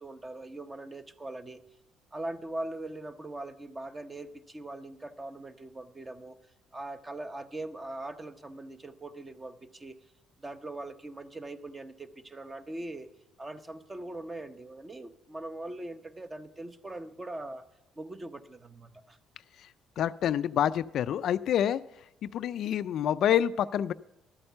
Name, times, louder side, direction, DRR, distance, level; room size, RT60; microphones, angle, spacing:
voice 1, 0.0-1.6 2.1-6.4 6.7-10.0 10.4-13.1 13.4-17.6 17.9-19.2, right 2 dB, 20° right, 10 dB, 0.8 m, -41 dB
voice 2, 20.0-21.8 22.2-23.9, left 10 dB, 60° left, 14 dB, 0.3 m, -27 dB
12.0 x 8.7 x 5.6 m, 0.94 s
cardioid pair, 120°, 0 cm